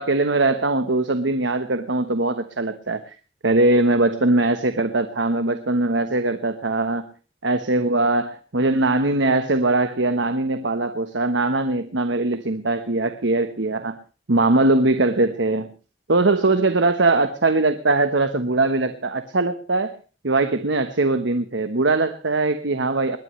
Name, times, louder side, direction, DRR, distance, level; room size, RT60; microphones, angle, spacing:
voice 1, 0.0-3.2 3.4-7.0 7.4-14.0 14.3-15.7 16.1-19.9 20.2-23.2, right 2 dB, 80° right, 1.2 m, -21 dB
21.0 x 18.5 x 3.2 m
head